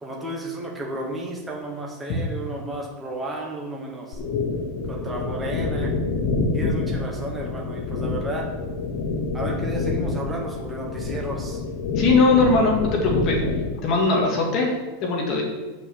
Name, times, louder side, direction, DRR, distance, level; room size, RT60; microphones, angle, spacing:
voice 1, 0.0-4.2 4.9-5.9 6.5-8.5 9.3-11.6, right 1 dB, 10° right, -1 dB, 1.2 m, -33 dB
sound 1, 4.1-13.8, left 3 dB, 45° left, 1.0 m, -27 dB
voice 2, 12.0-13.4 13.8-15.4, left 3 dB, 30° left, 0 dB, 2.0 m, -20 dB
7.7 x 6.5 x 7.7 m, 1.2 s
supercardioid pair, 180°, 0 cm